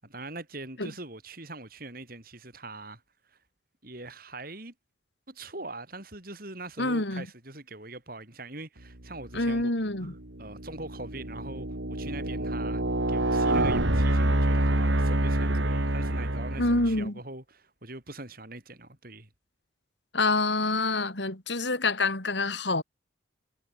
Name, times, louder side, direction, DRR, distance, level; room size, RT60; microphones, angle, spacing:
voice 1, 0.0-3.0 3.8-4.7 5.3-9.7 10.0-10.1 10.4-12.8 13.1-19.3, right 2 dB, 50° right, 5.6 m, -42 dB
voice 2, 6.8-7.3 9.3-10.1 16.6-17.1 20.1-22.8, left 2 dB, 70° left, 4.6 m, -27 dB
sound 1, 9.3-9.6 10.2-17.1, right 1 dB, 80° right, 3.5 m, -27 dB
head